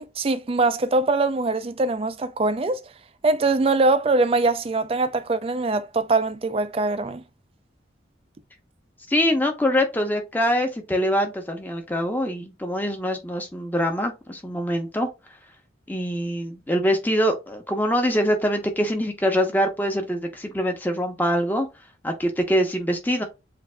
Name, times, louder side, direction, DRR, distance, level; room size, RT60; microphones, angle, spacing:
voice 1, 0.0-2.8 3.2-7.2, right 3 dB, 30° right, 0.4 m, -22 dB
voice 2, 9.1-15.1 15.9-21.7 22.0-23.2, equal, 10° left, 0.8 m, -24 dB
7.7 x 2.6 x 2.2 m
head